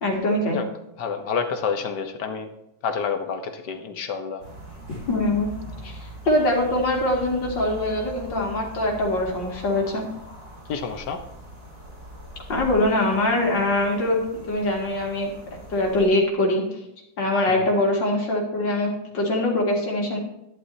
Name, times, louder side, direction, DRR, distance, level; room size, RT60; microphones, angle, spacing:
voice 1, 0.0-0.6 5.1-5.5 5.8-6.0 6.3-10.0 12.5-16.6 17.2-20.2, left 1 dB, 85° left, -1 dB, 2.9 m, -23 dB
voice 2, 1.0-2.5 2.8-4.4 10.7-11.2 17.5-17.7, left 6 dB, 70° left, 7 dB, 1.6 m, -28 dB
sound 1, 4.4-16.1, right 1 dB, 60° right, 4.8 m, -42 dB
11.5 x 11.0 x 2.8 m, 0.85 s
omnidirectional pair, 1.9 m